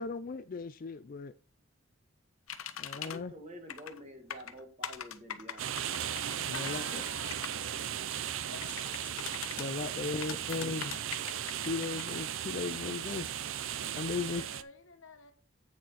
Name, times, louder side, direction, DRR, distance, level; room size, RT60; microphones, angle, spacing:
voice 1, 0.0-1.3 2.8-3.3 6.5-7.0 9.6-11.0 11.7-13.3 14.0-14.4, left 4 dB, 45° left, 0.4 m, -37 dB
sound 1, 2.5-3.2 3.7-4.0 4.3-7.6 8.6-9.7 10.2-12.1, left 9 dB, 90° left, 0.8 m, -42 dB
voice 2, 2.9-6.0, equal, 35° right, 1.9 m, -49 dB
sound 2, 5.6-14.6, right 10 dB, 70° right, 0.5 m, -37 dB
voice 3, 6.4-9.0 14.1-15.3, left 4 dB, 70° left, 1.3 m, -50 dB
sound 3, 6.4-7.5 7.8-8.2 8.7-11.7 12.1-12.2 12.6-13.3, left 3 dB, 10° left, 3.0 m, -57 dB
8.6 x 6.2 x 4.1 m
head